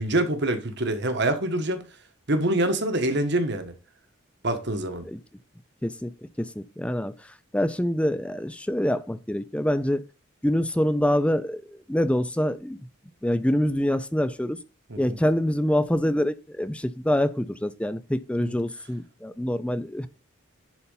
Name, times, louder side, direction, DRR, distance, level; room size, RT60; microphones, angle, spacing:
voice 1, 0.0-1.8 2.3-3.7 4.4-5.1 14.9-15.2 18.4-18.5, right 1 dB, 55° right, 1.4 m, -25 dB
voice 2, 5.8-6.1 6.4-7.1 7.5-10.0 10.4-11.6 11.9-12.8 13.2-14.6 15.0-20.1, equal, 5° left, 0.5 m, -25 dB
11.0 x 4.2 x 5.6 m
head